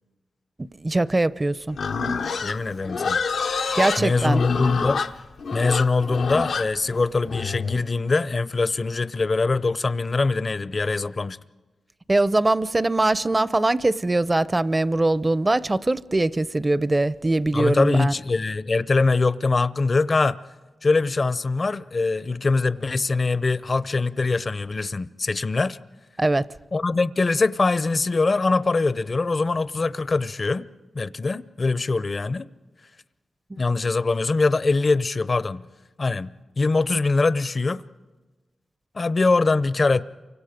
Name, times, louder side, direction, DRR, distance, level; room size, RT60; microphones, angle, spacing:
voice 1, 0.8-1.8 3.7-4.4 12.1-18.1 26.2-26.5 33.5-33.6, right 2 dB, 30° right, 0.6 m, -22 dB
Livestock farm animals working animals, 1.7-7.8, left 5 dB, 85° left, 0.8 m, -27 dB
voice 2, 2.4-3.2 4.0-5.0 5.5-11.4 17.5-20.4 20.8-25.8 26.7-30.7 30.9-32.5 33.6-35.6 36.0-37.8 38.9-40.0, left 3 dB, 45° left, 0.7 m, -23 dB
29.0 x 24.5 x 5.2 m
cardioid pair, 60°, 0 cm